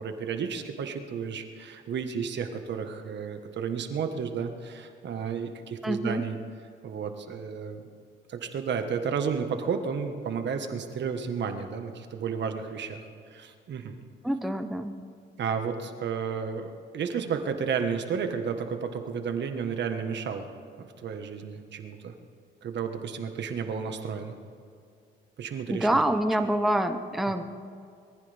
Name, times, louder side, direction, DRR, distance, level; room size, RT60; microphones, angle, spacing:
voice 1, 0.0-6.4 6.8-7.8 8.3-13.0 13.3-14.0 15.4-20.5 20.8-22.1 22.6-24.4 25.4-26.0, right 6 dB, 65° right, 6 dB, 1.5 m, -32 dB
voice 2, 5.8-6.2 14.2-14.9 25.7-27.4, right 1 dB, ahead, 7 dB, 0.8 m, -26 dB
23.0 x 14.5 x 3.5 m, 2.4 s
cardioid pair, 90°, 20 cm